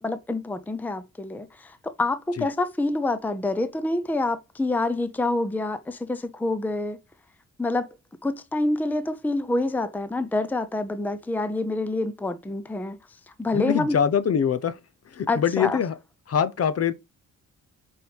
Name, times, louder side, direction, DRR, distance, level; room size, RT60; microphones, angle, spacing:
voice 1, 0.0-7.0 7.6-7.9 8.2-13.0 13.4-14.0 15.3-15.8, left 2 dB, 5° left, 0.6 m, -27 dB
voice 2, 13.5-14.8 15.1-15.9 16.3-16.9, left 8 dB, 50° left, 0.9 m, -24 dB
7.6 x 4.8 x 5.3 m
wide cardioid pair, 150°, 32 cm